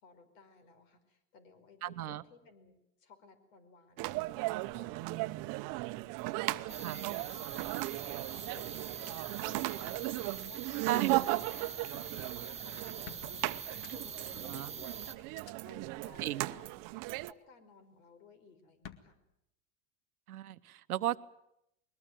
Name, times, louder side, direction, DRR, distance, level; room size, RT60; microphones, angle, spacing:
voice 1, 0.0-2.7 3.0-4.3 4.7-5.7 6.4-7.9 8.4-15.3 15.6-19.2, left 4 dB, 65° left, 11 dB, 4.9 m, -58 dB
voice 2, 1.8-2.2 6.8-7.0 10.8-11.1 14.5-14.7 16.2-16.5 20.3-21.2, right 13 dB, 90° right, 14 dB, 1.1 m, -34 dB
sound 1, 4.0-17.3, right 20 dB, 45° right, 0.9 m, -37 dB
sound 2, 6.7-15.1, right 6 dB, 15° right, 1.5 m, -44 dB
sound 3, 12.5-12.6 13.0-14.3 14.7-14.8 15.3-15.5 16.9-17.3 18.8-19.0, left 9 dB, 45° left, 2.0 m, -51 dB
21.5 x 20.0 x 9.2 m, 0.81 s
hypercardioid pair, 110°, 43 cm